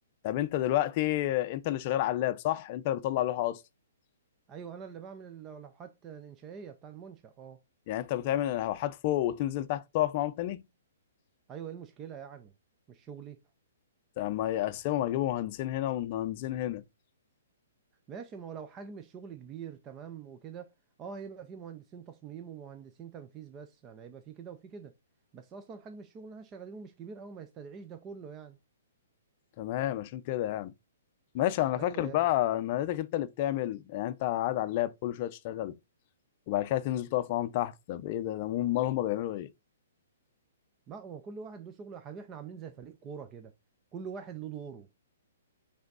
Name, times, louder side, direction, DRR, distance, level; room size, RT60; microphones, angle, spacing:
voice 1, 0.2-3.6 7.9-10.6 14.2-16.8 29.6-30.7 31.3-35.7 36.5-39.5, left 13 dB, 30° left, 0.6 m, -30 dB
voice 2, 4.5-7.6 11.5-12.5 12.9-13.4 18.1-20.7 21.0-24.9 25.3-28.6 31.8-32.2 40.9-43.5 43.9-44.9, right 6 dB, 15° right, 0.5 m, -44 dB
7.8 x 3.5 x 4.0 m
hypercardioid pair, 165°, 0 cm